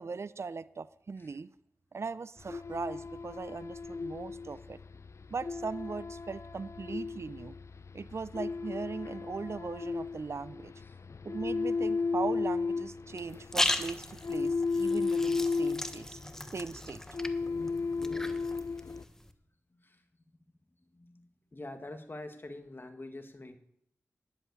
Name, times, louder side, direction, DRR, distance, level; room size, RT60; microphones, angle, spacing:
voice 1, 0.0-1.5 1.9-4.8 5.3-7.5 7.9-10.7 11.2-16.2 16.5-17.0 17.4-17.5, right 4 dB, 50° right, 16 dB, 0.5 m, -39 dB
sound 1, 2.4-19.0, left 4 dB, 55° left, 0.6 m, -35 dB
sound 2, 13.2-19.3, left 1 dB, 10° left, 1.1 m, -37 dB
voice 2, 20.9-23.6, left 2 dB, 40° left, 7 dB, 1.7 m, -46 dB
10.5 x 7.7 x 8.2 m, 0.73 s
cardioid pair, 50°, 6 cm